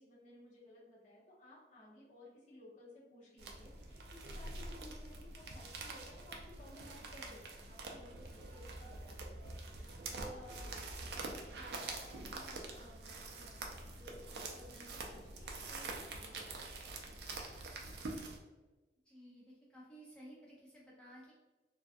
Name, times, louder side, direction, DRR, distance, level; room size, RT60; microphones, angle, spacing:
voice 1, 0.0-10.8 11.6-17.1, left 1 dB, 45° left, -8 dB, 0.7 m, -57 dB
sound 1, 3.4-18.4, right 2 dB, 65° right, 0.4 m, -46 dB
voice 2, 19.1-21.3, equal, 5° left, -6 dB, 0.4 m, -55 dB
2.4 x 2.2 x 2.5 m, 1.2 s
head